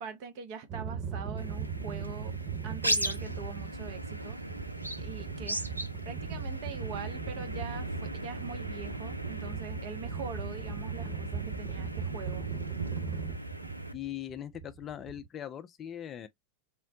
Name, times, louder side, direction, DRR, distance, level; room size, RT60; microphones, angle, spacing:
voice 1, 0.0-2.3 2.6-4.4 5.0-5.7 6.0-12.5, right 5 dB, 45° right, 0.7 m, -43 dB
sound 1, 0.7-15.3, right 6 dB, 25° right, 1.1 m, -39 dB
sound 2, 1.4-13.9, right 1 dB, 85° right, 0.3 m, -38 dB
voice 2, 13.9-16.3, left 10 dB, 25° left, 0.3 m, -40 dB
3.7 x 2.1 x 2.5 m
figure-of-eight pair, 90°, 0 cm